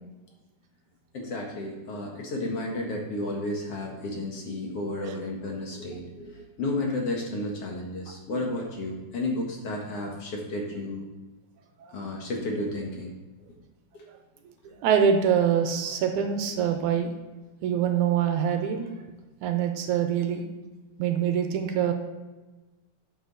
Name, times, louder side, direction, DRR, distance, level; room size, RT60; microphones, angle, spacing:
voice 1, 1.1-11.1 11.9-13.1 13.9-14.1, left 2 dB, 55° left, 0 dB, 2.1 m, -32 dB
voice 2, 14.4-17.1 17.6-18.9 19.4-20.4 21.0-21.9, right 8 dB, 80° right, 5 dB, 2.2 m, -25 dB
8.5 x 7.3 x 4.0 m, 1.2 s
omnidirectional pair, 3.6 m